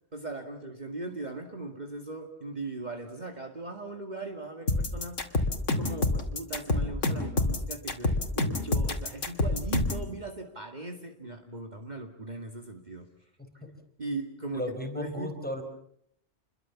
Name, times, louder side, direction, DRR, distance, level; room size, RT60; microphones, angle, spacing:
voice 1, 0.1-5.5 5.8-13.1 13.5-13.6 14.0-15.4, right 2 dB, 35° right, 4 dB, 2.2 m, -39 dB
sound 1, 4.7-10.1, left 2 dB, 80° left, 2.8 m, -27 dB
voice 2, 14.5-15.6, left 1 dB, 5° left, 6 dB, 4.2 m, -34 dB
28.5 x 22.5 x 7.2 m, 0.71 s
omnidirectional pair, 1.3 m